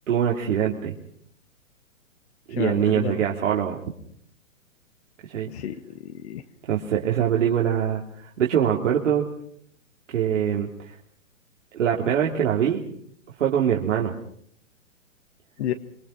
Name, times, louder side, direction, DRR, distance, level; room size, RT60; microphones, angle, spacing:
voice 1, 0.1-0.9 2.5-3.8 5.2-5.5 6.6-9.3 10.1-11.0 11.7-12.8 13.4-14.1, right 9 dB, 65° right, -1 dB, 3.5 m, -23 dB
voice 2, 2.5-3.2 5.5-6.4 15.6-15.7, left 11 dB, 55° left, 7 dB, 1.8 m, -31 dB
26.0 x 24.5 x 5.9 m, 0.65 s
hypercardioid pair, 125°, 40 cm